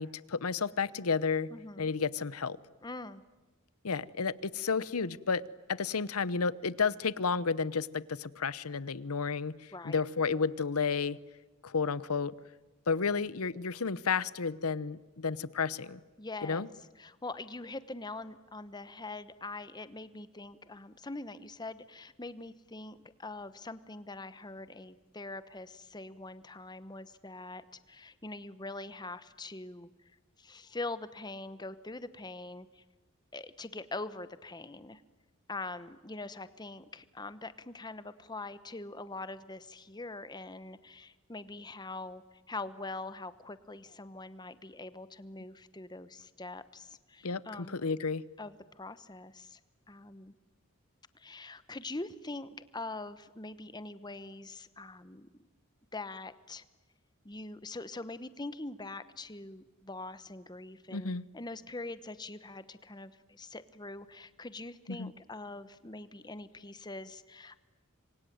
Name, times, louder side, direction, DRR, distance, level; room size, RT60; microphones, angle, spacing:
voice 1, 0.0-1.5 1.8-2.6 3.8-5.4 5.7-11.2 11.6-12.3 12.9-16.0 16.4-16.7 47.2-47.4 47.7-48.2 60.9-61.2 64.9-65.1, left 5 dB, 85° left, 18 dB, 0.9 m, -32 dB
voice 2, 1.5-1.9 2.8-3.2 9.7-10.0 16.2-16.6 17.0-29.9 30.4-32.8 33.3-35.0 35.5-47.8 48.4-49.6 49.9-50.3 51.1-55.3 55.9-56.6 57.2-67.6, left 2 dB, 20° left, 13 dB, 1.0 m, -43 dB
27.0 x 23.5 x 9.4 m, 1.2 s
head